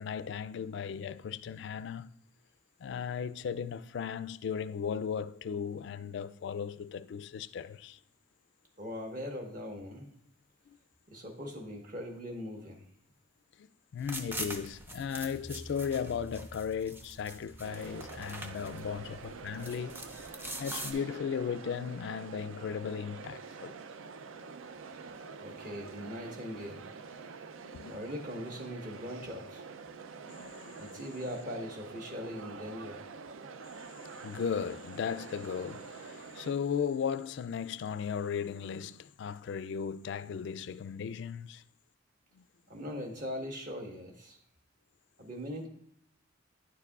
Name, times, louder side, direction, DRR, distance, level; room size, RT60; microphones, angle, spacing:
voice 1, 0.0-2.1 2.8-8.0 13.9-20.0 20.6-23.8 27.6-27.9 30.3-31.0 33.6-41.6 42.3-42.4, left 7 dB, 60° left, 0.3 m, -36 dB
voice 2, 8.8-10.1 11.1-12.8 25.4-26.8 27.8-29.6 30.8-33.0 42.7-44.4 45.2-45.7, equal, 45° right, 1.3 m, -40 dB
sound 1, 14.0-20.9, right 1 dB, 10° right, 0.5 m, -43 dB
sound 2, 17.6-36.5, right 5 dB, 80° right, 0.5 m, -47 dB
9.9 x 6.8 x 2.4 m
head